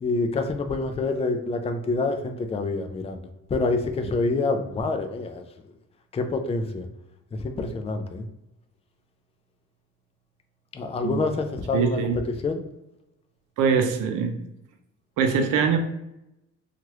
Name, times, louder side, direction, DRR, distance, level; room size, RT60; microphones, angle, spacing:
voice 1, 0.0-3.2 3.5-5.4 6.1-6.9 7.3-8.3 10.7-12.1 12.4-12.6, left 3 dB, 20° left, 6 dB, 0.4 m, -27 dB
voice 2, 11.7-12.2 13.6-14.4 15.2-15.8, right 6 dB, 85° right, 5 dB, 0.6 m, -23 dB
3.0 x 2.4 x 2.9 m, 0.88 s
cardioid pair, 90°, 30 cm